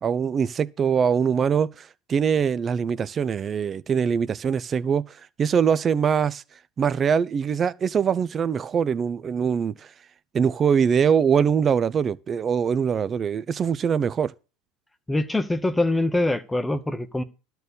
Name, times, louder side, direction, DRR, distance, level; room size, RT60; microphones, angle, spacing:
voice 1, 0.0-5.0 5.4-6.4 6.8-9.7 10.3-14.3, right 7 dB, 25° right, 0.6 m, -23 dB
voice 2, 15.1-17.2, left 2 dB, 5° left, 0.9 m, -24 dB
12.5 x 4.5 x 8.3 m
supercardioid pair, 150°, 0 cm